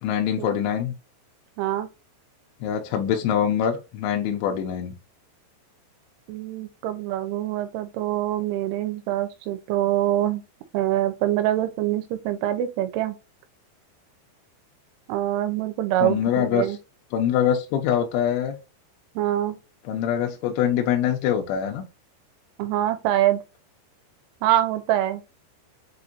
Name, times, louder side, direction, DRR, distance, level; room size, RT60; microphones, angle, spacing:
voice 1, 0.0-0.9 2.6-4.9 16.0-16.7 17.1-18.6 19.9-21.8, left 9 dB, 80° left, 3.0 m, -24 dB
voice 2, 1.6-1.9 6.3-10.4 10.7-13.2 15.1-16.8 19.2-19.6 22.6-23.4 24.4-25.2, right 13 dB, 85° right, 3.1 m, -24 dB
7.3 x 2.6 x 2.6 m
omnidirectional pair, 5.6 m